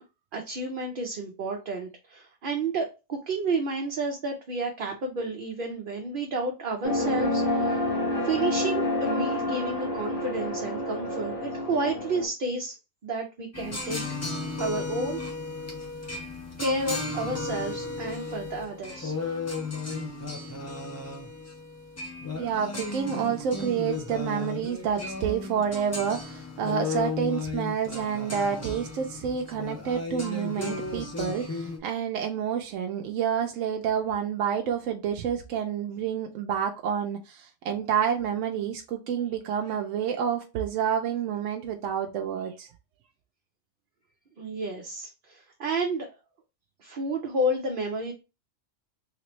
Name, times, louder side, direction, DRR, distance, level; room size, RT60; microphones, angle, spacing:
voice 1, 0.3-7.9 8.2-12.8 13.0-14.0 14.6-15.2 16.6-19.1 44.4-46.1 46.8-48.1, right 2 dB, 50° right, 0.7 m, -31 dB
sound 1, 6.8-12.3, left 1 dB, 50° left, 0.9 m, -28 dB
sound 2, 13.5-31.8, left 3 dB, 25° left, 0.3 m, -35 dB
voice 2, 22.4-42.7, right 8 dB, 85° right, 0.9 m, -29 dB
3.3 x 3.1 x 3.0 m
omnidirectional pair, 1.3 m